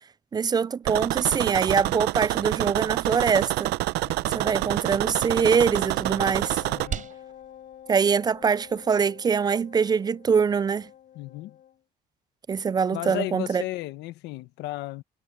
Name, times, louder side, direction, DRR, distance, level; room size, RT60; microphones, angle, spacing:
voice 1, 0.3-3.7 4.3-6.6 7.9-10.9 12.5-13.6, right 6 dB, 25° right, 0.4 m, -23 dB
sound 1, 0.9-6.9, right 18 dB, 85° right, 0.6 m, -27 dB
voice 2, 4.0-4.7 6.7-7.1 11.1-11.6 12.9-15.0, left 17 dB, 90° left, 1.2 m, -35 dB
Wind instrument woodwind instrument, 5.1-11.8, left 10 dB, 55° left, 7.4 m, -48 dB
sound 2, 7.7-9.1, right 8 dB, 50° right, 6.9 m, -44 dB
cardioid pair, 110°, 17 cm